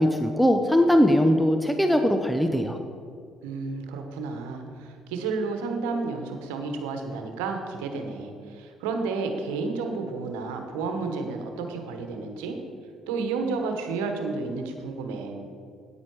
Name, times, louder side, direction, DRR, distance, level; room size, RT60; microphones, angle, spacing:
voice 1, 0.0-2.8, equal, ahead, 5 dB, 0.8 m, -21 dB
voice 2, 3.4-12.6 13.1-15.5, right 4 dB, 85° right, 5 dB, 1.2 m, -31 dB
9.7 x 8.9 x 4.8 m, 2.3 s
hypercardioid pair, 60°, 0 cm